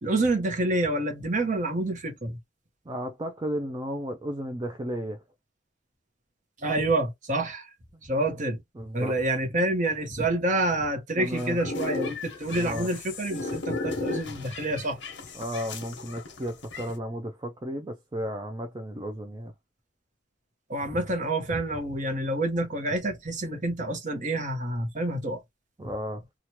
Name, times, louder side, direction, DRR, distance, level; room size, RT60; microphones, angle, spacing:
voice 1, 0.0-2.4 6.6-7.7 8.1-8.6 8.9-15.0 20.7-25.4, right 2 dB, 40° right, 1.0 m, -28 dB
voice 2, 2.9-5.2 8.7-9.2 11.2-11.6 12.5-12.9 15.3-19.5 25.8-26.3, equal, 20° right, 0.4 m, -34 dB
sound 1, 11.3-16.9, left 3 dB, 65° left, 1.1 m, -35 dB
3.0 x 2.4 x 2.8 m
head